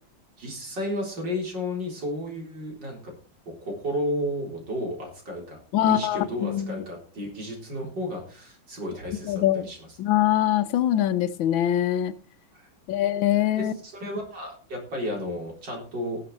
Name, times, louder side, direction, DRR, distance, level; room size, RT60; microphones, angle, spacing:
voice 1, 0.4-3.1 3.6-10.0 12.5-12.7 13.6-16.2, left 1 dB, 60° right, 0 dB, 4.6 m, -33 dB
voice 2, 5.7-6.8 9.3-9.7 10.0-12.1 12.9-13.7, left 12 dB, 80° left, 13 dB, 1.5 m, -23 dB
19.0 x 6.9 x 4.2 m, 0.40 s
omnidirectional pair, 2.2 m